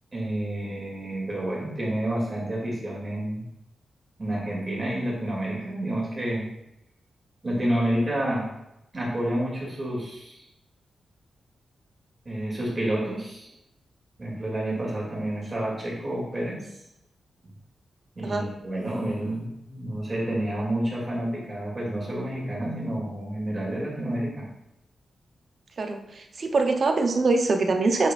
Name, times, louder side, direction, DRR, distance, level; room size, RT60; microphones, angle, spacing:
voice 1, 0.1-3.4 4.2-6.5 7.4-8.5 8.9-10.4 12.2-13.5 14.2-16.7 18.2-24.5, right 1 dB, 25° right, -4 dB, 2.6 m, -29 dB
voice 2, 25.8-28.1, right 3 dB, 45° right, 5 dB, 0.8 m, -24 dB
7.5 x 6.6 x 2.5 m, 0.85 s
wide cardioid pair, 135°, 0 cm